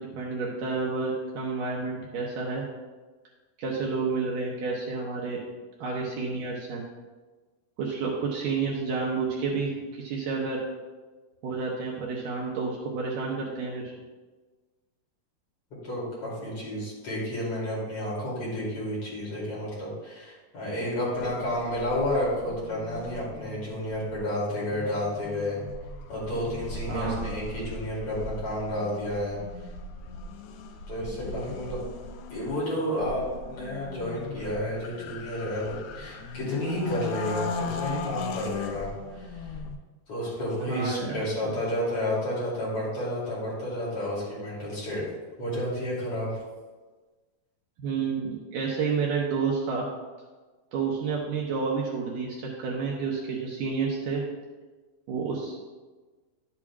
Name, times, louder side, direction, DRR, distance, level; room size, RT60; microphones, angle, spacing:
voice 1, 0.0-2.6 3.6-5.4 5.8-6.8 7.8-10.6 11.4-13.9 26.9-27.3 40.7-41.6 47.8-49.9 50.7-54.2 55.1-55.6, right 5 dB, 70° right, -3 dB, 2.2 m, -30 dB
voice 2, 15.8-25.6 26.1-29.4 30.9-31.8 32.3-39.5 40.1-45.1 45.4-46.4, left 1 dB, 40° left, -7 dB, 3.6 m, -31 dB
sound 1, 21.1-39.8, left 4 dB, 85° left, 2.6 m, -38 dB
11.0 x 8.5 x 2.4 m, 1.3 s
omnidirectional pair, 4.5 m